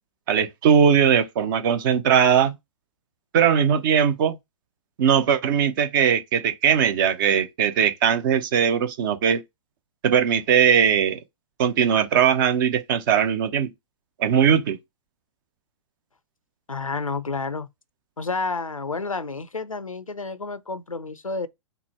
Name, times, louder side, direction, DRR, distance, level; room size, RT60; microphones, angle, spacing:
voice 1, 0.3-2.6 3.3-4.4 5.0-9.4 10.0-11.2 11.6-13.7 14.2-14.8, right 8 dB, 40° right, 0.7 m, -20 dB
voice 2, 16.7-17.7 18.2-21.5, left 3 dB, 85° left, 0.5 m, -30 dB
4.0 x 2.1 x 4.3 m
figure-of-eight pair, 115°, 17 cm